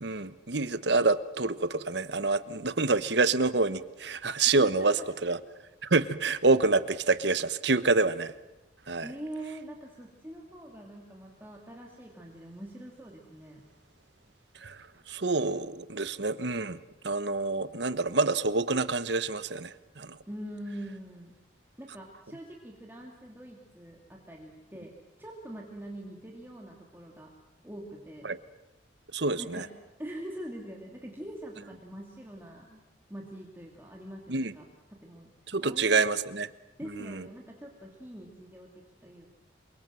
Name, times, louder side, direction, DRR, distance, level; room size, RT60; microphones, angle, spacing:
voice 1, 0.0-5.4 5.8-8.3 8.9-9.1 14.5-20.2 28.2-28.4 29.1-29.7 34.3-34.5 35.5-36.5 37.0-37.3, right 3 dB, 65° right, 14 dB, 1.1 m, -27 dB
voice 2, 4.5-5.1 9.0-13.6 20.3-21.3 21.8-27.3 27.6-28.3 29.4-29.7 30.0-32.8 33.1-34.6 34.9-35.3 35.6-36.2 36.8-39.3, right 1 dB, 10° right, -1 dB, 2.6 m, -44 dB
27.5 x 23.5 x 7.7 m, 1.0 s
head